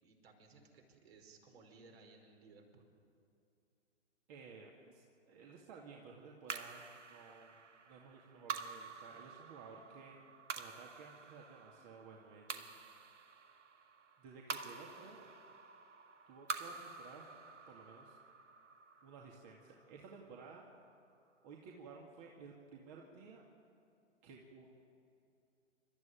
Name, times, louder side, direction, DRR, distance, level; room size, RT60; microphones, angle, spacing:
voice 1, 0.0-2.9, right 3 dB, 55° right, 3 dB, 4.8 m, -61 dB
voice 2, 4.3-5.0 5.3-7.6 7.9-10.2 10.6-12.7 14.2-15.3 16.3-17.3 17.7-18.1 19.0-20.6 21.4-23.5 24.2-24.8, right 5 dB, 35° right, -1 dB, 2.4 m, -55 dB
sound 1, 6.5-21.0, right 5 dB, 75° right, 1.8 m, -49 dB
29.5 x 13.0 x 9.2 m, 2.5 s
figure-of-eight pair, 120°, 37 cm